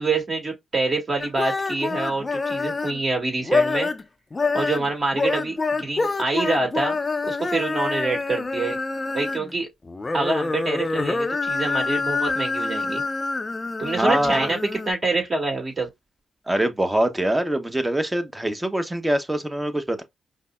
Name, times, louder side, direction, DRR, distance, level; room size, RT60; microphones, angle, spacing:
voice 1, 0.0-3.9 4.5-7.0 7.2-8.8 9.1-9.7 10.1-13.0 13.8-14.6 14.9-15.9, right 3 dB, 40° right, 1.7 m, -26 dB
sound 1, 1.2-3.0 3.4-4.0 4.3-9.5 9.8-14.9, left 3 dB, 30° left, 0.5 m, -26 dB
voice 2, 14.0-14.5 16.5-20.0, right 1 dB, 15° right, 0.8 m, -23 dB
5.1 x 2.0 x 2.2 m
supercardioid pair, 50°, 0 cm